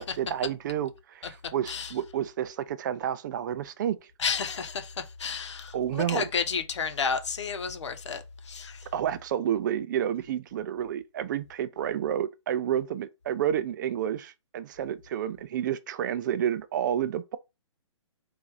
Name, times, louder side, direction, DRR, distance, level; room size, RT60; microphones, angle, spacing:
voice 1, 0.0-4.0 5.7-6.3 8.9-17.4, right 10 dB, 40° right, 0.4 m, -30 dB
voice 2, 4.2-8.9, left 6 dB, 65° left, 1.0 m, -31 dB
3.7 x 2.7 x 4.7 m
hypercardioid pair, 140°, 16 cm